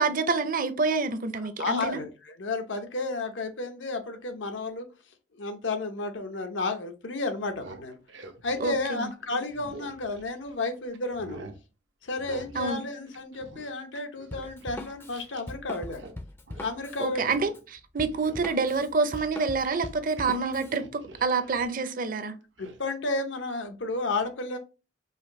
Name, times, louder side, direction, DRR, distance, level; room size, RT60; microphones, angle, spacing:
voice 1, 0.0-2.0 8.6-9.1 12.5-12.8 17.0-22.3, right 4 dB, 50° right, 0.5 m, -27 dB
voice 2, 1.6-4.9 5.3-8.0 8.4-11.4 12.0-16.1 16.6-17.4 22.6-24.6, left 3 dB, 90° left, 0.8 m, -32 dB
sound 1, 7.4-10.6 10.9-11.6 12.2-12.8 13.1-15.5 15.8-16.2 16.5-16.7 17.1-17.7 18.1-20.2 20.5-21.7 22.6-22.8, right 3 dB, 85° right, 0.7 m, -47 dB
Drum kit, 14.3-20.8, left 1 dB, 15° left, 0.4 m, -41 dB
5.0 x 2.6 x 3.0 m
head